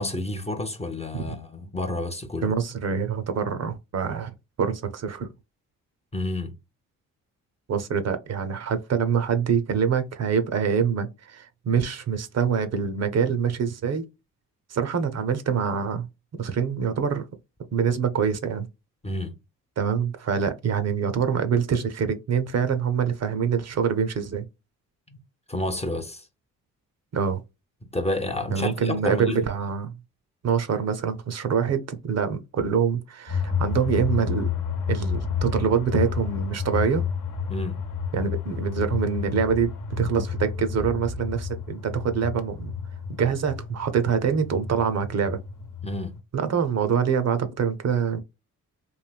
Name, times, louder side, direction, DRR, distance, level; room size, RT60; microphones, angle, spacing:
voice 1, 0.0-2.6 6.1-6.6 19.0-19.4 25.1-25.2 25.5-26.3 27.9-29.4 37.5-37.8 45.8-46.2, left 1 dB, 20° left, 0.6 m, -30 dB
voice 2, 2.4-4.3 4.6-5.3 7.7-14.0 14.7-16.1 16.4-17.3 17.7-18.7 19.8-24.4 27.1-27.4 28.5-29.9 30.4-34.5 34.9-37.0 38.1-42.7 43.1-45.4 46.3-48.2, right 7 dB, 50° right, 0.6 m, -25 dB
sound 1, 33.3-46.2, left 6 dB, 60° left, 0.9 m, -30 dB
3.2 x 2.6 x 2.2 m
supercardioid pair, 55°, 34 cm